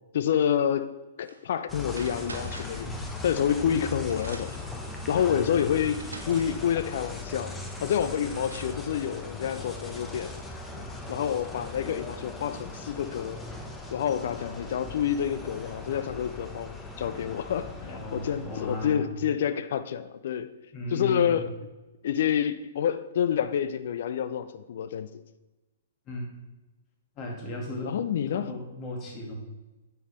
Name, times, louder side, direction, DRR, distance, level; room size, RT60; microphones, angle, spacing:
voice 1, 0.1-0.9 1.2-2.9 3.2-4.5 5.1-10.3 11.1-13.4 13.9-17.7 18.1-20.5 20.9-21.5 22.0-25.1 27.8-28.5, left 9 dB, 50° left, 13 dB, 0.3 m, -28 dB
sound 1, 1.2-1.4 1.9-2.9 3.7-3.8 4.1-4.7 5.5-5.6 5.9-6.6 7.9-8.0 8.3-8.8, right 2 dB, 75° right, 0.8 m, -44 dB
sound 2, 1.7-18.9, left 2 dB, 10° left, 0.7 m, -39 dB
voice 2, 5.2-5.8 10.7-11.0 17.8-19.1 20.7-21.4 26.1-26.3 27.1-28.0 28.3-29.3, left 1 dB, 30° left, 0 dB, 1.8 m, -36 dB
8.7 x 5.6 x 3.1 m, 1.1 s
figure-of-eight pair, 115°, 0 cm